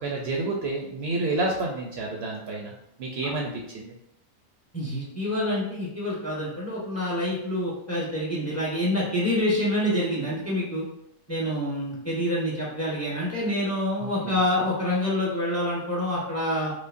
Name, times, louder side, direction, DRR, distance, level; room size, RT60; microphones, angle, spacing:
voice 1, 0.0-2.7 3.0-3.9 14.0-14.4, right 2 dB, 65° right, 0 dB, 0.8 m, -29 dB
voice 2, 4.7-10.8 11.3-16.7, left 1 dB, 15° left, -6 dB, 1.0 m, -27 dB
5.0 x 2.0 x 2.5 m, 0.79 s
omnidirectional pair, 1.3 m